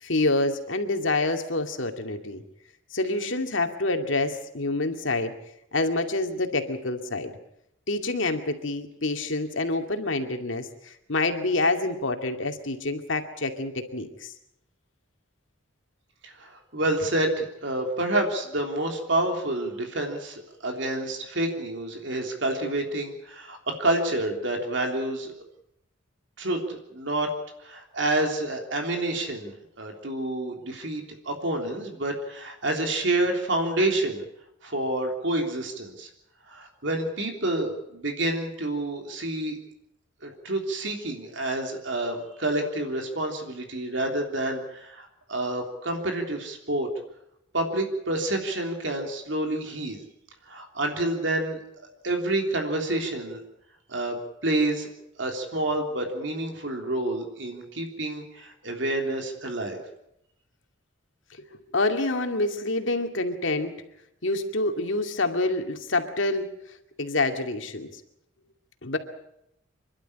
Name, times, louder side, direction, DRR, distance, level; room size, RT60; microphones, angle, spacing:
voice 1, 0.0-2.4 2.9-5.4 5.7-7.3 7.9-14.3 61.7-63.7 64.2-66.5 67.0-67.9 68.8-69.0, left 2 dB, 70° left, 5 dB, 2.4 m, -27 dB
voice 2, 16.2-25.3 26.4-27.3 27.6-34.2 34.6-36.1 36.5-39.6 40.2-46.9 47.5-50.0 50.5-51.6 52.0-53.4 53.9-54.9 55.2-59.8, right 1 dB, 65° right, 3 dB, 3.4 m, -28 dB
27.5 x 12.0 x 10.0 m, 0.81 s
head